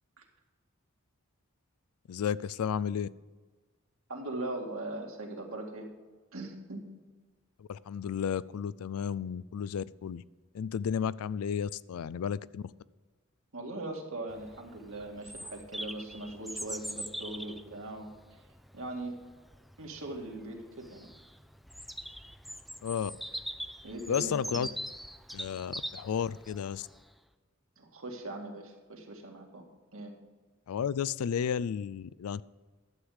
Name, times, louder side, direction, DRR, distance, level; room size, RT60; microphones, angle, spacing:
voice 1, 2.1-3.1 7.6-10.2 10.5-12.6 22.8-23.1 24.1-24.7 25.3-26.9 30.7-32.4, left 7 dB, 85° left, 20 dB, 0.4 m, -33 dB
voice 2, 4.1-5.9 6.3-6.9 13.5-18.1 18.7-19.2 19.8-21.1 23.8-24.7 27.8-30.2, right 2 dB, 70° right, 1 dB, 2.0 m, -40 dB
Bird vocalization bird call bird song, 14.3-27.0, equal, ahead, 0.3 m, -42 dB
11.5 x 8.0 x 4.9 m, 1.3 s
head